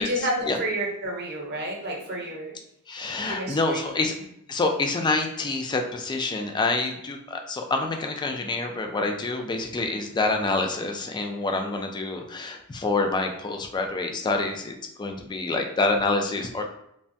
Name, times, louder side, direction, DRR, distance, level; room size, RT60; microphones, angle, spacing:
voice 1, 0.0-2.5 3.2-3.9, right 1 dB, 50° right, -1 dB, 0.8 m, -30 dB
voice 2, 2.9-4.1 4.5-16.6, left 3 dB, 20° left, 4 dB, 0.3 m, -27 dB
3.2 x 2.1 x 2.6 m, 0.77 s
head